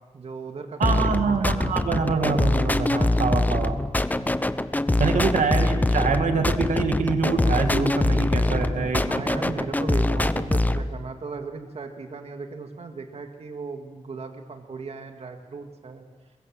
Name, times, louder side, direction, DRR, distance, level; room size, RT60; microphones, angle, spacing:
voice 1, 0.1-1.1 1.4-1.7 4.2-4.5 5.5-5.8 9.1-16.1, right 4 dB, 55° right, 5 dB, 2.1 m, -37 dB
sound 1, 0.8-10.8, left 2 dB, 15° left, 0.9 m, -23 dB
voice 2, 0.8-3.8 5.0-9.1, right 4 dB, 85° right, 6 dB, 2.3 m, -25 dB
23.5 x 21.5 x 7.7 m, 1.2 s
wide cardioid pair, 105°, 13 cm